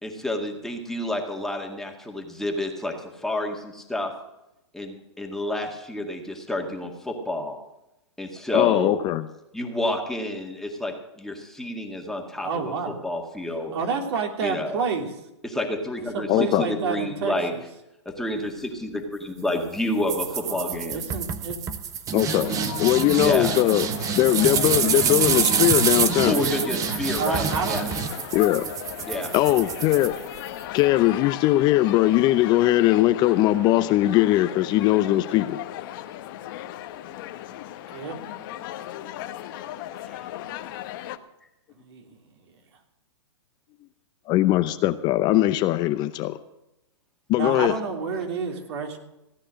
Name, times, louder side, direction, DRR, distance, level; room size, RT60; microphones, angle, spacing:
voice 1, 0.0-4.1 4.7-7.6 8.2-9.0 9.5-12.7 13.0-13.7 14.4-14.8 15.4-17.5 18.1-21.0 23.2-23.5 26.3-27.9 29.1-29.3 40.1-40.2, left 1 dB, 5° left, 1 dB, 2.0 m, -29 dB
voice 2, 8.5-9.2 16.3-16.7 22.1-23.9 24.1-26.4 28.3-28.7 29.3-30.1 30.7-35.6 44.3-46.4 47.3-47.8, left 15 dB, 30° left, 11 dB, 0.7 m, -20 dB
voice 3, 12.4-13.0 13.7-15.1 16.1-17.4 20.4-21.6 22.5-22.6 27.2-27.8 37.9-38.2 41.8-42.1 47.3-49.0, right 5 dB, 60° right, 3 dB, 3.2 m, -29 dB
sound 1, 20.1-30.6, right 8 dB, 20° right, 1.0 m, -27 dB
sound 2, 22.2-41.2, left 13 dB, 45° left, 1.1 m, -36 dB
16.5 x 9.9 x 6.4 m, 0.89 s
hypercardioid pair, 135°, 15 cm